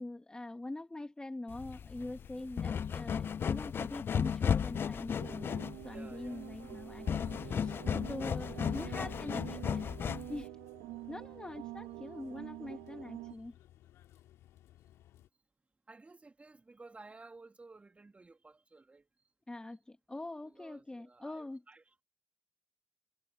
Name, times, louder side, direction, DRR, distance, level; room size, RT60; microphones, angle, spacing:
voice 1, 0.0-5.6 5.8-7.8 8.1-9.6 10.3-10.5 11.1-13.5 19.5-21.6, left 2 dB, 15° left, 1.8 m, -43 dB
sound 1, 1.5-10.4, left 7 dB, 50° left, 0.5 m, -35 dB
sound 2, 2.0-15.3, left 13 dB, 75° left, 2.6 m, -61 dB
voice 2, 2.3-2.8 5.9-6.5 9.5-10.3 15.9-19.1 20.4-22.0, right 3 dB, 25° right, 2.6 m, -56 dB
sound 3, 5.2-13.4, right 19 dB, 85° right, 1.3 m, -47 dB
hypercardioid pair, 50°, 5 cm